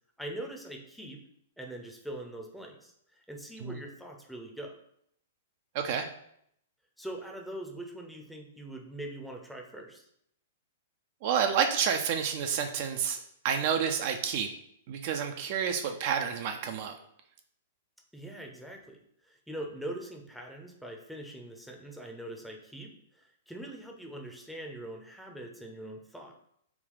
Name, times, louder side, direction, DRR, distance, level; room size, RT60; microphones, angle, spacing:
voice 1, 0.2-1.2 1.6-4.7 7.0-10.0 18.1-26.3, right 1 dB, ahead, 1 dB, 0.6 m, -42 dB
voice 2, 5.7-6.1 11.2-13.2 13.4-14.5 14.9-16.9, right 7 dB, 50° right, 5 dB, 0.4 m, -29 dB
3.5 x 2.3 x 3.8 m, 0.72 s
hypercardioid pair, 115°, 0 cm